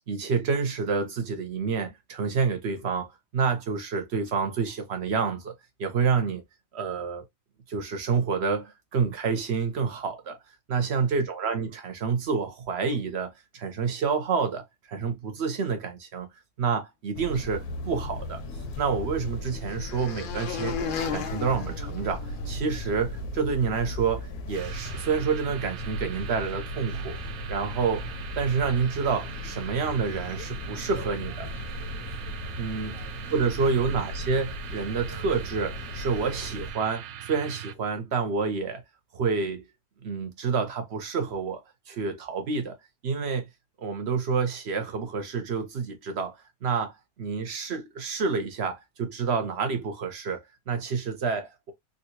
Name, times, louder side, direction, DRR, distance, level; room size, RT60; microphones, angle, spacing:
voice 1, 0.1-5.5 5.8-6.4 6.7-7.2 7.7-10.4 10.7-16.3 16.6-18.4 18.8-20.8 21.1-27.2 27.5-28.1 28.3-31.5 32.6-32.9 33.3-38.8 39.1-39.6 40.0-42.8 43.0-43.5 43.8-51.7, right 5 dB, 50° right, 1.0 m, -28 dB
sound 1, 17.1-36.7, left 1 dB, 85° left, 1.2 m, -37 dB
sound 2, 18.1-22.7, left 6 dB, 65° left, 0.5 m, -36 dB
sound 3, 24.5-37.7, right 10 dB, 75° right, 1.0 m, -40 dB
3.9 x 2.3 x 2.8 m
omnidirectional pair, 1.5 m